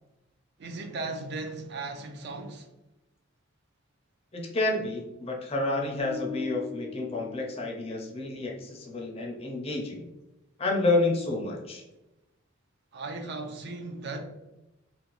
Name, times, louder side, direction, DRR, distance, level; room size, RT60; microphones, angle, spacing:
voice 1, 0.6-2.7 12.9-14.2, right 3 dB, 55° right, 0.4 m, -37 dB
voice 2, 4.3-10.0 10.6-11.8, left 2 dB, 30° left, 0.5 m, -29 dB
sound 1, 6.0-8.2, left 7 dB, 80° left, 0.5 m, -40 dB
2.5 x 2.2 x 2.9 m
head